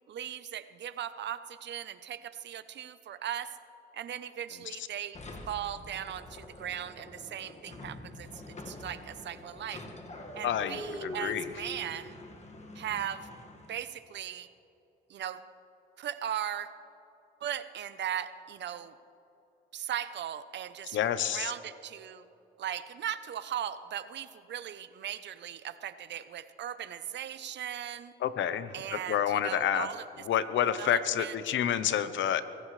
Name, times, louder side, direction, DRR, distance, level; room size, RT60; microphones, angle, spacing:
voice 1, 0.1-3.5 3.9-5.2 5.5-9.8 10.3-12.1 12.7-13.3 13.7-14.5 15.1-15.4 16.0-16.7 17.4-18.9 19.7-21.0 21.3-22.2 22.6-28.1 28.7-30.0 30.8-31.3, right 10 dB, 60° right, 12 dB, 0.8 m, -38 dB
sound 1, 5.1-13.9, left 1 dB, 35° left, 1.8 m, -45 dB
voice 2, 10.4-11.5 20.9-21.5 28.2-29.9 30.3-32.4, left 9 dB, 70° left, 13 dB, 0.9 m, -29 dB
23.5 x 16.0 x 3.3 m, 3.0 s
cardioid pair, 90°, 20 cm